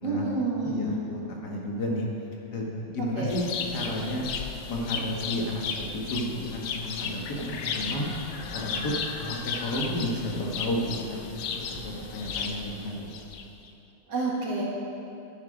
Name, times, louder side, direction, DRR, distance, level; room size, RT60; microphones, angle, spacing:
voice 1, 0.0-1.0 3.2-3.3 14.1-14.6, right 3 dB, 70° right, -3 dB, 2.3 m, -29 dB
voice 2, 0.6-2.1 2.5-4.3 4.7-8.1 8.5-8.9 9.2-11.2 11.5-12.9, left 1 dB, 60° left, -2 dB, 2.0 m, -32 dB
sound 1, 3.3-13.7, left 6 dB, 80° left, 1.4 m, -35 dB
10.0 x 9.8 x 5.0 m, 2.8 s
omnidirectional pair, 2.0 m